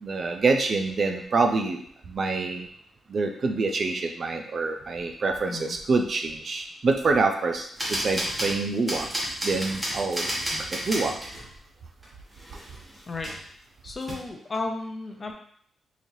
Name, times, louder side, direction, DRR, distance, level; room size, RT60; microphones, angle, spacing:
voice 1, 0.0-2.7 3.1-9.1 9.4-11.1, right 3 dB, 40° right, 5 dB, 0.4 m, -26 dB
voice 2, 5.4-5.8 13.1-13.3 13.8-15.3, left 3 dB, 30° left, 3 dB, 0.5 m, -33 dB
sound 1, 7.8-11.5 12.0-12.1 12.3-13.5 14.0-14.1, equal, 15° right, 1.0 m, -32 dB
3.9 x 3.1 x 2.7 m, 0.62 s
wide cardioid pair, 145°, 0 cm